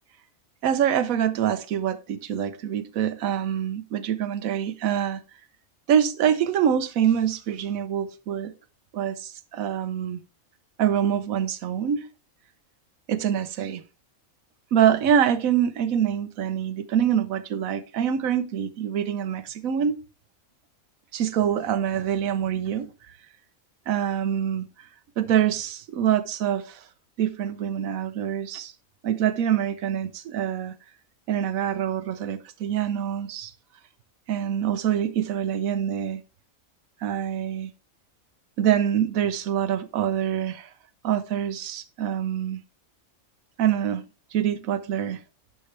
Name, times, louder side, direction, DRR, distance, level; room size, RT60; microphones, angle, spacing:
voice 1, 0.6-5.2 5.9-8.5 8.9-10.2 10.8-12.1 13.1-13.8 14.7-20.0 21.1-22.9 23.9-24.7 25.2-26.8 27.2-28.7 29.0-30.7 31.3-33.5 34.3-36.2 37.0-37.7 38.6-40.7 41.0-42.6 43.6-44.1 44.3-45.2, right 9 dB, 85° right, 1.1 m, -25 dB
11.0 x 4.7 x 3.2 m
omnidirectional pair, 1.4 m